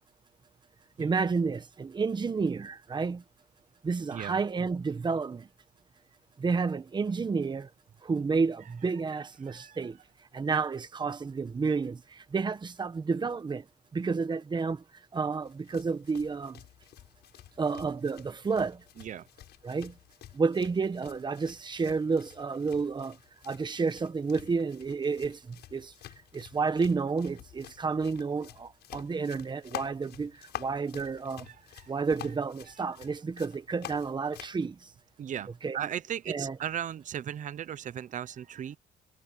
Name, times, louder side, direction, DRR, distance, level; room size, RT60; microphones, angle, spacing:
voice 1, 1.0-3.2 3.8-5.5 6.4-7.7 8.0-10.0 10.3-12.0 12.3-13.6 13.9-14.8 15.1-16.6 17.6-18.8 19.6-19.9 20.3-23.2 23.5-25.9 26.3-30.3 30.6-31.5 31.9-34.8 35.6-35.8 36.3-36.6, right 4 dB, 25° right, 1.4 m, -30 dB
voice 2, 9.5-9.8 19.0-19.3 31.5-31.9 35.2-38.8, right 9 dB, 50° right, 0.8 m, -37 dB
sound 1, 15.4-34.6, left 13 dB, 80° left, 7.5 m, -49 dB
cardioid pair, 125°, 17 cm